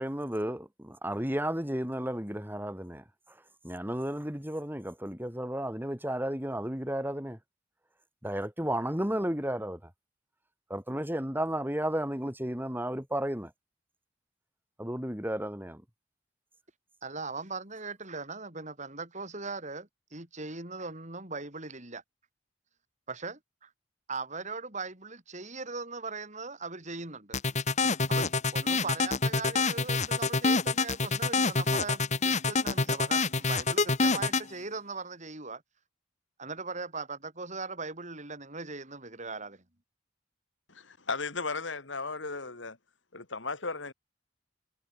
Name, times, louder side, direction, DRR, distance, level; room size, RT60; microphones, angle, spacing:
voice 1, 0.0-3.0 3.6-7.4 8.2-9.8 10.7-13.5 14.8-15.8, right 1 dB, 10° right, 7.0 m, -33 dB
voice 2, 17.0-22.0 23.1-23.7 24.1-27.4 28.1-35.6 36.4-39.6, right 4 dB, 40° right, 6.1 m, -39 dB
sound 1, 27.3-34.4, left 4 dB, 40° left, 1.7 m, -26 dB
voice 3, 40.7-42.8 43.1-43.9, left 4 dB, 80° left, 3.1 m, -35 dB
head